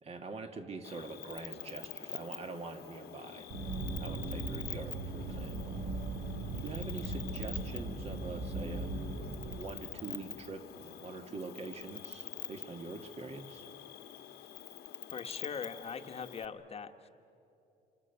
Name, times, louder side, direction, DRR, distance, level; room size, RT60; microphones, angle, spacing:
voice 1, 0.0-3.5 4.0-5.8 6.5-8.9 9.6-13.7, right 3 dB, 40° right, 6 dB, 2.1 m, -44 dB
Cricket, 0.8-16.5, left 12 dB, 75° left, 1.4 m, -46 dB
sound 1, 3.5-9.6, right 2 dB, 55° right, 2.8 m, -38 dB
voice 2, 15.1-17.1, left 6 dB, 35° left, 7 dB, 1.3 m, -41 dB
27.0 x 26.0 x 6.9 m, 2.8 s
cardioid pair, 110°, 17 cm